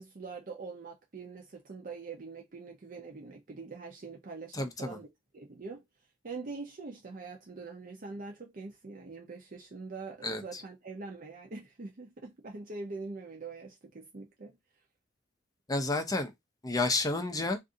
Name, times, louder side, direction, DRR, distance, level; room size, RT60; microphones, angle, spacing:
voice 1, 0.0-5.1 5.3-5.8 6.2-14.5, right 4 dB, 45° right, 0.6 m, -43 dB
voice 2, 4.5-5.0 10.2-10.4 15.7-16.3 16.6-17.6, left 2 dB, 20° left, 0.5 m, -30 dB
2.6 x 2.5 x 3.6 m
head